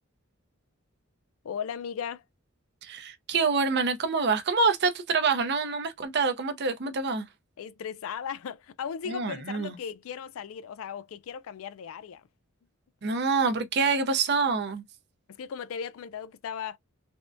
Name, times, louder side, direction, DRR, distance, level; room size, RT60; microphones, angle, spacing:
voice 1, 1.4-2.2 7.6-12.2 15.3-16.8, left 7 dB, 75° left, 0.4 m, -37 dB
voice 2, 2.8-7.2 9.1-9.8 13.0-14.8, right 4 dB, 55° right, 0.6 m, -26 dB
3.5 x 2.1 x 2.5 m
head